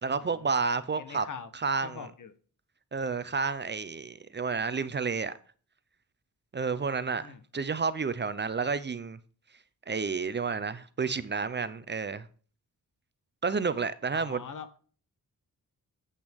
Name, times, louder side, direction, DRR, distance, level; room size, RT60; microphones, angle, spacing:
voice 1, 0.0-1.3 1.5-2.1 2.9-5.3 6.5-7.3 7.5-9.2 9.9-12.3 13.4-14.4, right 5 dB, 30° right, 0.6 m, -30 dB
voice 2, 1.0-1.5 1.8-2.3 7.2-7.4 14.1-14.8, left 6 dB, 65° left, 1.2 m, -42 dB
8.8 x 8.2 x 3.6 m
wide cardioid pair, 135°, 34 cm